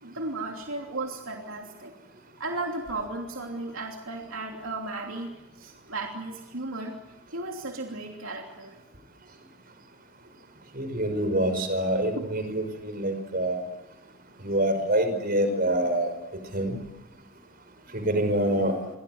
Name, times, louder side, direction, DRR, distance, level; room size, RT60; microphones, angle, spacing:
voice 1, 0.0-1.9 2.4-7.0 7.3-8.7 12.2-12.3, right 2 dB, 70° right, 1 dB, 3.1 m, -35 dB
voice 2, 10.7-13.6 14.4-16.1 16.5-16.8 17.9-18.8, right 1 dB, 45° right, 8 dB, 5.6 m, -26 dB
29.5 x 23.5 x 8.0 m, 1.0 s
head